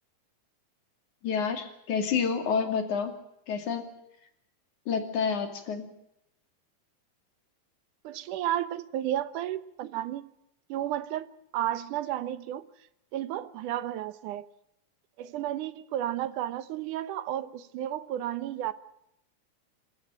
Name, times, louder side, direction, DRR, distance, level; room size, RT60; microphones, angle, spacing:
voice 1, 1.2-3.1 3.5-3.9 4.9-5.9, left 6 dB, 70° left, 4.1 m, -29 dB
voice 2, 8.0-10.2 10.7-11.3 11.5-12.6 13.1-14.5 15.2-18.7, right 12 dB, 80° right, 2.5 m, -32 dB
28.0 x 14.5 x 9.0 m
omnidirectional pair, 3.6 m